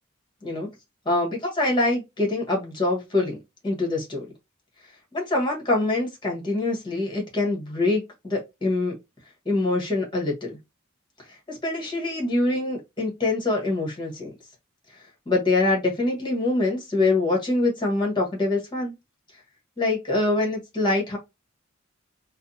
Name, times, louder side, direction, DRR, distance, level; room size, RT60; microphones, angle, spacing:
voice 1, 1.0-3.4 3.6-4.3 5.1-9.0 9.4-10.6 11.3-14.3 15.3-18.9 19.8-21.2, left 2 dB, 25° left, 1.3 m, -24 dB
3.4 x 2.2 x 2.7 m
head